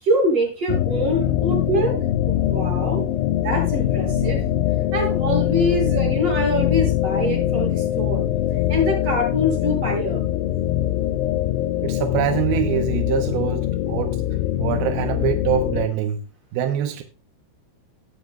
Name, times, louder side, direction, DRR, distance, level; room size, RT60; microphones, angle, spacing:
voice 1, 0.0-1.9 2.3-3.0 3.3-4.4 4.9-8.2 8.7-10.2, equal, 30° right, 8.3 m, -24 dB
sound 1, 0.7-15.9, left 12 dB, 80° left, 3.2 m, -23 dB
voice 2, 11.8-14.2 14.6-16.2 16.5-17.0, right 10 dB, 80° right, 2.3 m, -24 dB
19.0 x 7.9 x 2.3 m
omnidirectional pair, 5.5 m